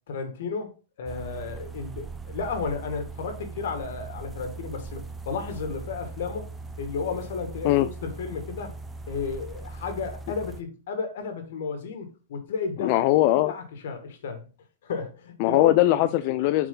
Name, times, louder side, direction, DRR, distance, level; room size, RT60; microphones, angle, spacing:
voice 1, 0.1-6.5 6.8-8.8 9.1-13.0 13.5-14.5 14.8-16.1, left 5 dB, 70° left, 2.0 m, -33 dB
sound 1, 1.1-10.6, right 3 dB, 15° right, 0.7 m, -40 dB
voice 2, 12.8-13.5 15.4-16.7, left 15 dB, 50° left, 0.4 m, -21 dB
7.9 x 4.5 x 4.0 m
hypercardioid pair, 120°, 0 cm